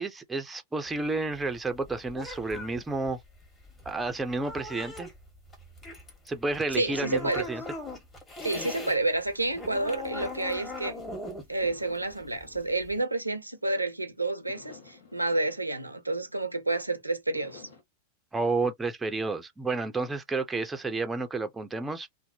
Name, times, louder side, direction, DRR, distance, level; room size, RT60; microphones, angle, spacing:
voice 1, 0.0-3.2 3.9-5.1 6.3-7.6 18.3-22.1, right 3 dB, 10° right, 0.5 m, -31 dB
sound 1, 0.9-9.0 9.3-13.0, left 1 dB, 20° left, 1.2 m, -40 dB
voice 2, 6.7-7.5 8.4-11.0 11.2-17.7, right 2 dB, 85° right, 0.5 m, -30 dB
sound 2, 11.6-13.9 14.5-16.7 17.3-17.8, left 5 dB, 65° left, 1.0 m, -53 dB
2.6 x 2.0 x 2.7 m
figure-of-eight pair, 90°, 0 cm